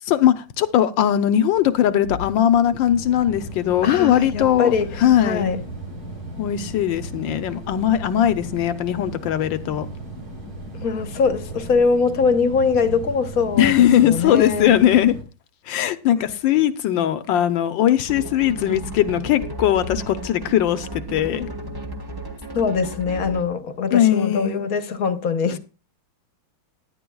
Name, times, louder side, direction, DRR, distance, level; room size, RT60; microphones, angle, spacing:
voice 1, 0.1-4.7 5.0-5.5 6.4-9.9 13.6-15.2 15.7-21.5 23.9-24.6, left 11 dB, 75° left, 1.4 m, -19 dB
sound 1, 1.5-15.2, right 1 dB, 85° right, 3.9 m, -36 dB
voice 2, 3.8-5.6 10.8-14.7 16.2-16.3 22.5-25.6, left 5 dB, 50° left, 1.3 m, -22 dB
sound 2, 18.1-23.6, right 2 dB, 15° right, 1.2 m, -34 dB
17.0 x 10.5 x 2.3 m
omnidirectional pair, 2.2 m